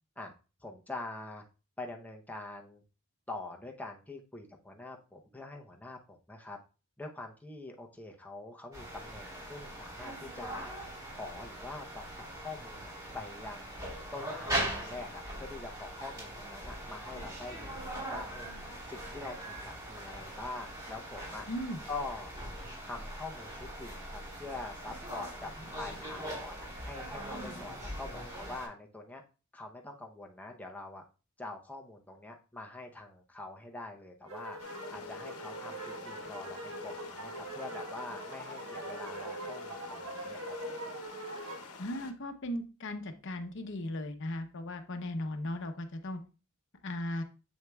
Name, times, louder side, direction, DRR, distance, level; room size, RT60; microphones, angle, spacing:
voice 1, 0.6-1.4 1.8-2.8 3.3-6.6 7.0-10.7 11.1-18.5 18.9-21.4 21.9-22.3 22.8-25.5 25.8-29.2 29.5-31.0 31.4-34.6 34.9-40.5, left 2 dB, 5° left, 2 dB, 0.7 m, -44 dB
sound 1, 8.7-28.7, right 1 dB, 15° right, 3.4 m, -41 dB
voice 2, 21.5-21.8 41.8-46.2 46.8-47.2, left 1 dB, 55° left, 7 dB, 0.7 m, -37 dB
sound 2, 34.3-41.7, right 1 dB, 65° right, 1.4 m, -42 dB
sound 3, 34.6-42.1, left 5 dB, 85° left, 0.8 m, -49 dB
7.1 x 6.3 x 2.3 m, 0.32 s
head